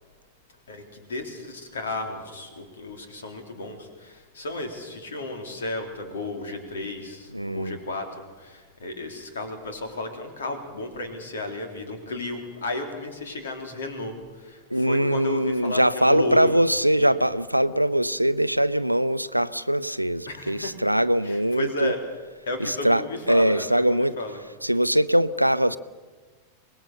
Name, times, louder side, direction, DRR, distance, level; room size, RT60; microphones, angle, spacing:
voice 1, 0.7-8.1 8.4-16.6 17.0-17.1 20.3-20.7 21.2-22.0 22.5-24.4, left 2 dB, 65° left, 5 dB, 3.7 m, -33 dB
voice 2, 7.3-7.8 14.7-21.9 22.6-24.2 24.6-25.8, right 1 dB, 90° right, 15 dB, 0.6 m, -22 dB
25.0 x 20.0 x 6.9 m, 1.4 s
figure-of-eight pair, 90°, 0 cm